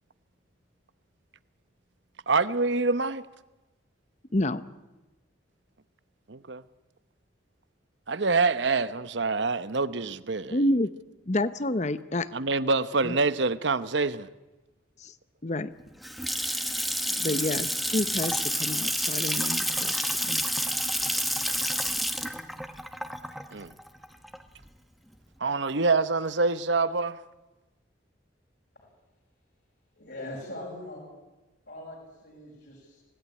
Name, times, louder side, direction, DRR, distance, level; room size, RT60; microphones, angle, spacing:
voice 1, 2.3-3.3 6.3-6.6 8.1-10.6 12.3-14.3 17.2-17.4 23.5-23.7 25.4-27.2, right 3 dB, 65° right, 0.9 m, -26 dB
voice 2, 4.3-4.6 10.5-10.9 11.3-12.3 13.0-13.2 15.0-15.1 15.4-15.7 17.2-20.4, left 1 dB, 35° left, 0.9 m, -29 dB
Water tap faucet / Sink (filling or washing) / Splash splatter, 15.8-24.7, equal, ahead, 1.2 m, -29 dB
voice 3, 30.0-31.1 31.7-33.0, left 1 dB, 60° left, 6.1 m, -41 dB
26.0 x 18.0 x 9.8 m
head